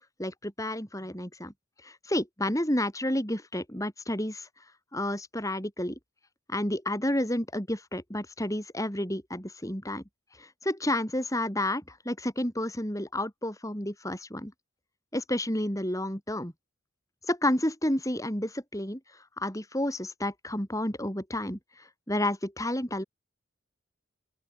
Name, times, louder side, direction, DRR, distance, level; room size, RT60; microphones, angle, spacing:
voice 1, 0.2-1.5 1.8-4.5 4.9-6.0 6.5-10.0 10.4-14.5 15.1-16.5 17.3-19.0 19.4-23.0, left 1 dB, 15° left, 4.8 m, -30 dB
open air
head